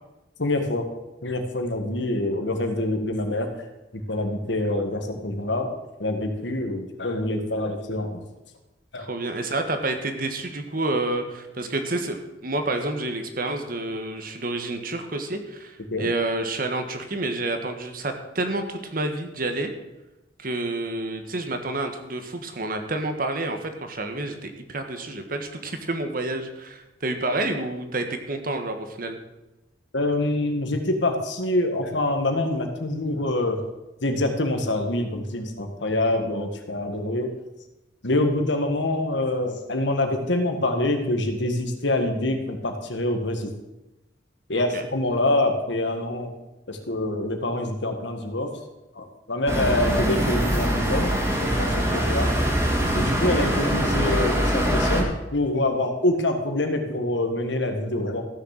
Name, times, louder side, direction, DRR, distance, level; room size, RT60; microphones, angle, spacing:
voice 1, 0.4-0.8 1.2-3.5 4.1-5.7 6.0-8.2 8.9-9.1 15.9-16.1 29.9-33.6 34.0-37.3 38.0-43.5 44.5-46.3 46.7-48.5 48.9-51.1 51.4-52.3 52.9-58.2, left 1 dB, 75° left, 5 dB, 1.7 m, -25 dB
voice 2, 9.0-19.7 20.4-29.2 44.5-44.8, right 2 dB, 50° right, 6 dB, 1.4 m, -29 dB
sound 1, 49.5-55.0, equal, 15° right, 2.4 m, -23 dB
14.5 x 6.7 x 6.6 m, 0.99 s
head